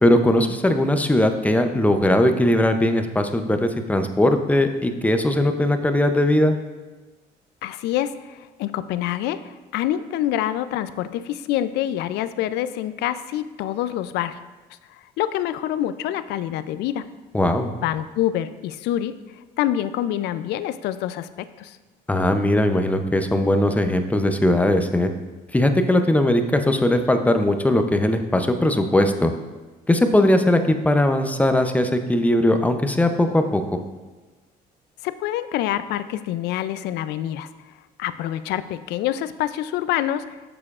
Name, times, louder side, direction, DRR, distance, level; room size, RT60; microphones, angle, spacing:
voice 1, 0.0-6.5 17.3-17.7 22.1-25.1 25.5-29.3 29.9-33.6, left 1 dB, 10° left, 7 dB, 0.5 m, -19 dB
voice 2, 7.6-14.4 15.2-17.0 17.8-19.1 19.6-21.3 21.6-21.8 35.0-37.5 38.0-40.4, left 12 dB, 80° left, 13 dB, 0.4 m, -26 dB
8.5 x 6.8 x 2.4 m, 1.2 s
cardioid pair, 110°, 17 cm